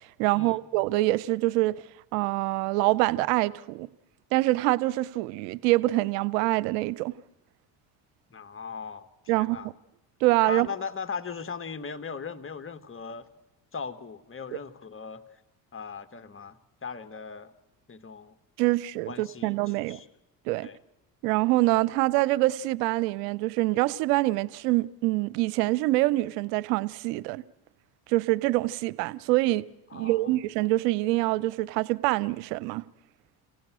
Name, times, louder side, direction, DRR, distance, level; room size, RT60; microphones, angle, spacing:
voice 1, 0.2-1.8 2.1-3.9 4.3-7.1 9.3-9.6 10.2-10.7 18.6-20.0 20.5-20.7 21.2-27.4 28.1-29.6 29.9-32.8, right 19 dB, 85° right, 0.7 m, -25 dB
voice 2, 8.3-9.1 9.3-9.7 10.5-13.3 13.7-15.2 15.7-17.5 17.9-18.3 19.1-20.0 20.6-20.8 29.9-30.4, left 5 dB, 25° left, 1.6 m, -38 dB
29.0 x 17.5 x 6.2 m
supercardioid pair, 75°, 48 cm